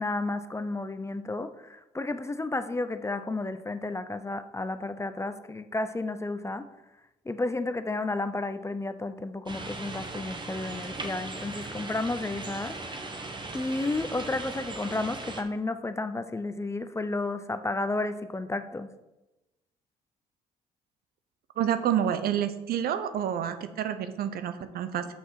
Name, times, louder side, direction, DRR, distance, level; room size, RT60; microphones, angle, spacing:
voice 1, 0.0-6.7 7.3-13.1 13.5-18.9, left 2 dB, 15° left, 11 dB, 0.6 m, -32 dB
sound 1, 9.5-15.4, right 2 dB, 30° right, 1.3 m, -38 dB
voice 2, 21.6-25.1, right 9 dB, 65° right, 10 dB, 0.7 m, -28 dB
6.1 x 5.6 x 5.8 m, 1.0 s
supercardioid pair, 65°, 17 cm